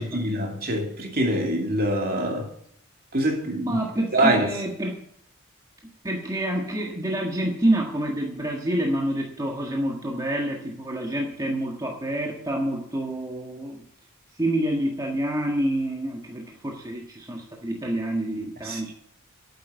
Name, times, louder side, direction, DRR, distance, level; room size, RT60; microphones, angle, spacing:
voice 1, 0.0-2.5 3.1-3.8 4.1-4.5 18.6-18.8, right 1 dB, 45° right, 2.8 m, -24 dB
voice 2, 3.6-5.0 6.0-13.8 14.4-18.9, right 1 dB, 15° right, 1.5 m, -27 dB
9.6 x 8.1 x 9.1 m
head